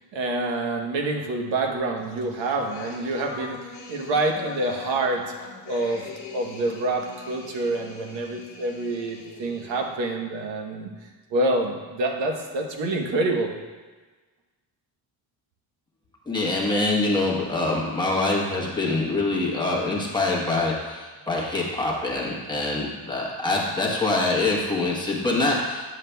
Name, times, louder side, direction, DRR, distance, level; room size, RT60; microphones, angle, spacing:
voice 1, 0.1-5.2 5.7-6.0 6.3-10.9 11.3-13.5, right 2 dB, 90° right, 2 dB, 1.1 m, -27 dB
sound 1, 2.1-10.0, left 5 dB, 50° left, 1.1 m, -41 dB
voice 2, 16.3-25.9, left 2 dB, 10° left, -4 dB, 1.0 m, -25 dB
9.5 x 7.3 x 2.2 m, 1.3 s
wide cardioid pair, 170°, 43 cm